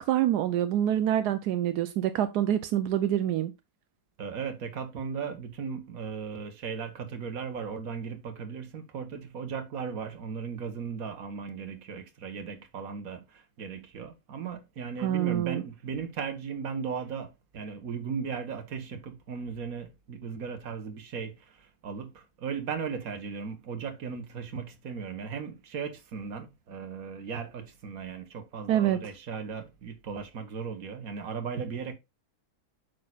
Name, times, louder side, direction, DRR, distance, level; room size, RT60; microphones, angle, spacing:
voice 1, 0.0-3.5 15.0-15.6 28.7-29.0, right 11 dB, 90° right, 1.2 m, -26 dB
voice 2, 4.2-31.9, right 6 dB, 65° right, 1.6 m, -37 dB
8.7 x 6.4 x 2.3 m
omnidirectional pair, 1.6 m